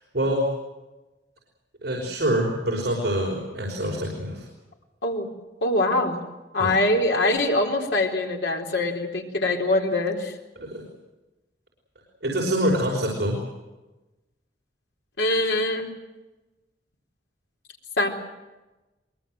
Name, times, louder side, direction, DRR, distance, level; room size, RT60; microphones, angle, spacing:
voice 1, 0.1-0.5 1.8-4.5 6.6-6.7 10.6-10.8 12.2-13.4, equal, 65° right, -2 dB, 5.4 m, -25 dB
voice 2, 5.6-6.2 6.5-10.3 15.2-15.9 18.0-18.1, left 2 dB, 80° left, 2 dB, 3.9 m, -23 dB
23.5 x 22.0 x 7.9 m, 1.1 s
head